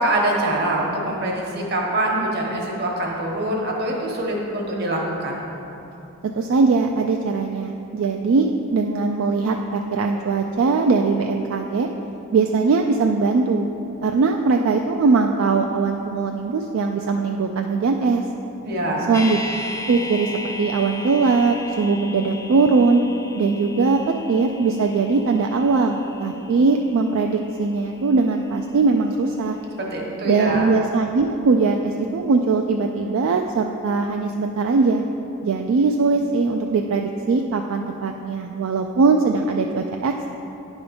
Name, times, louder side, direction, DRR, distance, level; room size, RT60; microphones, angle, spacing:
voice 1, 0.0-5.5 18.6-19.1 29.8-30.7, right 1 dB, 45° right, -1 dB, 1.1 m, -24 dB
voice 2, 6.2-11.9 12.3-13.7 14.0-18.2 19.1-19.4 19.9-23.0 23.3-24.0 24.3-29.6 30.2-35.0 35.4-40.4, right 4 dB, 65° right, 3 dB, 0.3 m, -20 dB
sound 1, 19.1-29.2 29.5-29.6, left 1 dB, 15° left, 0.4 m, -37 dB
9.5 x 3.6 x 5.2 m, 2.9 s
head